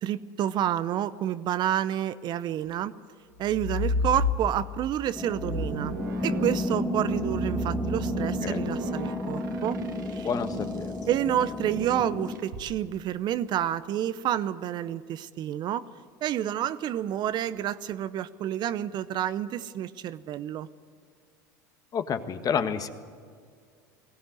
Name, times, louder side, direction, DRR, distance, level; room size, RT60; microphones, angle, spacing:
voice 1, 0.0-2.9 3.4-6.0 6.2-9.8 10.1-10.3 11.1-15.8 16.2-20.7, right 11 dB, 45° right, 15 dB, 0.8 m, -29 dB
sound 1, 3.4-4.8 5.3-10.8 12.3-12.7, left 1 dB, 85° right, 2.0 m, -33 dB
sound 2, 5.1-12.4, left 1 dB, 10° left, 2.0 m, -32 dB
voice 2, 8.2-8.7 10.2-10.9 21.9-22.9, left 7 dB, 40° left, 9 dB, 1.5 m, -30 dB
19.5 x 17.0 x 7.8 m, 2.1 s
hypercardioid pair, 85°, 10 cm